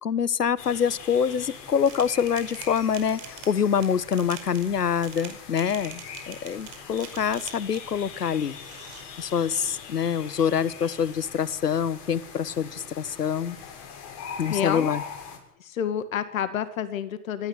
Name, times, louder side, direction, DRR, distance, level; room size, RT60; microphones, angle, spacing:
voice 1, 0.0-8.6 9.2-13.6 14.4-15.0, left 7 dB, 80° left, 20 dB, 1.3 m, -25 dB
sound 1, 0.6-15.4, left 6 dB, 40° left, 7.4 m, -42 dB
sound 2, 1.9-8.0 8.5-9.0, right 12 dB, 45° right, 5.2 m, -44 dB
voice 2, 14.5-14.9 15.6-17.5, left 9 dB, 55° left, 12 dB, 2.1 m, -29 dB
27.0 x 13.5 x 10.0 m, 0.77 s
figure-of-eight pair, 110°, 47 cm